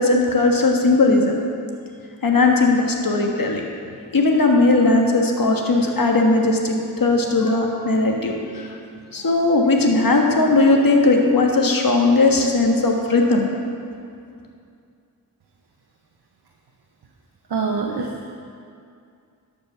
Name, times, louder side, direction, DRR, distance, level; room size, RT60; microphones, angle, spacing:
voice 1, 0.0-1.3 2.2-3.6 4.1-8.7 9.1-13.5, left 3 dB, 60° left, 1 dB, 1.5 m, -18 dB
voice 2, 17.5-18.3, right 4 dB, 75° right, 0 dB, 1.0 m, -25 dB
12.0 x 5.3 x 6.7 m, 2.4 s
cardioid pair, 45°, 39 cm